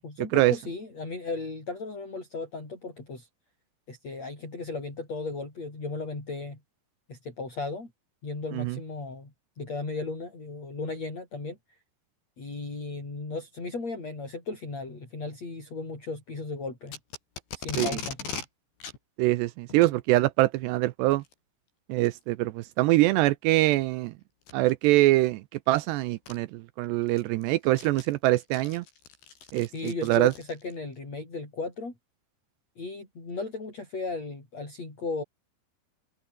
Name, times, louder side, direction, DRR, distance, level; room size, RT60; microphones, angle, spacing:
voice 1, 0.0-3.3 3.9-6.6 7.1-7.9 8.2-11.6 12.4-17.0 17.6-18.2 29.7-31.9 32.8-35.2, left 3 dB, 35° left, 8.8 m, -36 dB
Packing tape duct tape, 16.9-18.5 18.8-19.0 19.7-20.0 21.1-21.3 22.0-22.1 22.8-22.9 24.4-24.7 25.8-25.9 26.3-26.4 26.8-30.8, left 5 dB, 65° left, 8.2 m, -39 dB
voice 2, 19.2-21.2 21.9-24.1 24.5-25.4 25.7-26.5 26.8-28.8 29.5-30.3, right 18 dB, 85° right, 2.5 m, -23 dB
omnidirectional pair, 5.5 m